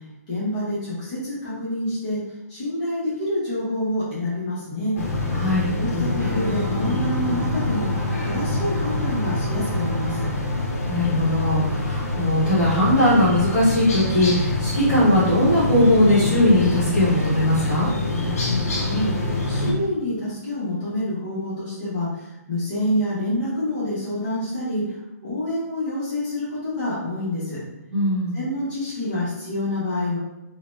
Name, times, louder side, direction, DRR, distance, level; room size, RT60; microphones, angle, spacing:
voice 1, 0.3-2.2 2.5-4.9 5.7-7.9 8.2-10.2 18.7-19.1 19.5-25.0 25.2-27.6 28.3-30.2, left 1 dB, 25° left, -11 dB, 1.0 m, -27 dB
sound 1, 5.0-19.7, left 2 dB, 60° left, 0.8 m, -25 dB
voice 2, 5.3-5.7 10.9-17.9 27.9-28.4, left 1 dB, 5° right, -14 dB, 1.2 m, -19 dB
sound 2, 6.2-10.3, right 4 dB, 75° right, 0.5 m, -34 dB
2.7 x 2.2 x 3.1 m, 0.95 s
hypercardioid pair, 170°, 9 cm